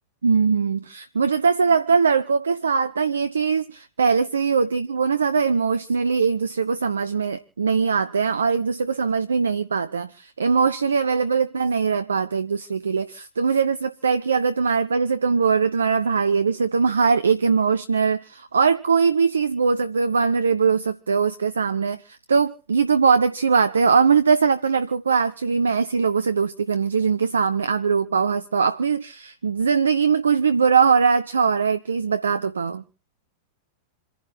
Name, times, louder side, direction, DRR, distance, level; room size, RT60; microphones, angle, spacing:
voice 1, 0.2-32.8, right 5 dB, 70° right, 0.6 m, -21 dB
28.0 x 11.0 x 2.7 m
figure-of-eight pair, 90°, 0 cm